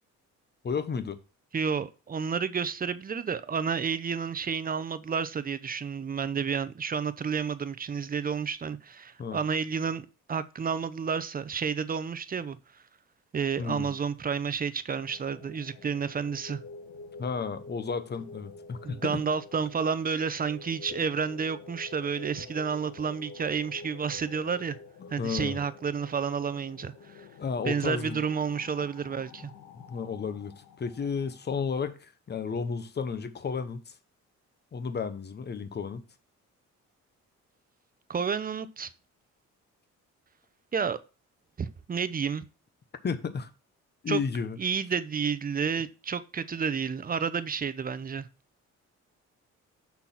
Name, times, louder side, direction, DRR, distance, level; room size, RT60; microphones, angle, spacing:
voice 1, 0.6-1.2 9.2-9.4 13.6-13.9 17.2-19.2 25.0-25.6 27.4-28.2 29.9-33.9 34.7-36.0 43.0-43.5 44.0-44.6, left 5 dB, 35° left, 0.9 m, -33 dB
voice 2, 1.5-12.6 13.3-16.6 18.8-24.8 25.1-27.3 27.6-29.5 38.1-38.9 40.7-41.0 41.6-42.5 44.1-44.2 44.6-48.3, right 6 dB, 30° right, 0.6 m, -30 dB
sound 1, 14.9-31.8, left 4 dB, 85° left, 1.2 m, -48 dB
6.1 x 4.3 x 5.8 m
cardioid pair, 90°, 30 cm